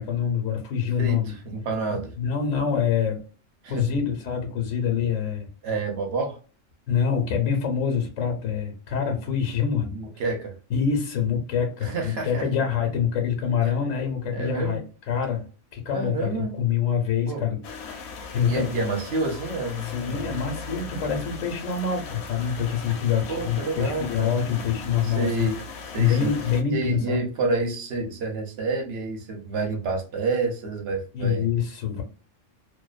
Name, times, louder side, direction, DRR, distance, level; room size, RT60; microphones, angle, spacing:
voice 1, 0.0-1.3 2.2-3.2 3.7-5.5 6.9-9.9 10.7-14.8 15.1-15.4 15.7-17.6 17.8-18.7 19.9-25.5 26.0-27.2 31.1-32.0, left 7 dB, 85° left, 2 dB, 1.1 m, -25 dB
voice 2, 1.0-2.1 3.6-3.8 5.6-6.4 9.9-10.6 11.8-12.5 13.6-13.7 14.3-14.8 15.9-16.6 17.3-17.5 18.3-20.3 23.3-24.4 25.0-25.6 25.9-26.3 26.7-31.5, right 3 dB, 60° right, 4 dB, 0.9 m, -29 dB
sound 1, 17.6-26.6, left 4 dB, 65° left, 0.8 m, -38 dB
2.5 x 2.1 x 2.3 m, 0.37 s
omnidirectional pair, 1.3 m